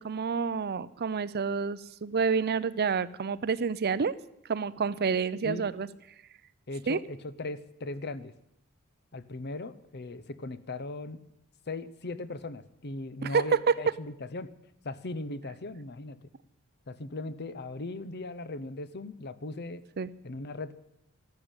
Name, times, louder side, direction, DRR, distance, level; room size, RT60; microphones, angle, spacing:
voice 1, 0.0-4.1 4.5-5.9 6.9-7.0 13.2-13.7 20.0-20.1, right 5 dB, 45° right, 17 dB, 0.5 m, -28 dB
voice 2, 5.4-5.7 6.7-8.3 9.1-11.2 11.7-14.5 14.8-16.2 16.9-19.8 20.2-20.7, left 2 dB, 50° left, 15 dB, 0.8 m, -38 dB
12.5 x 12.0 x 9.0 m, 0.82 s
head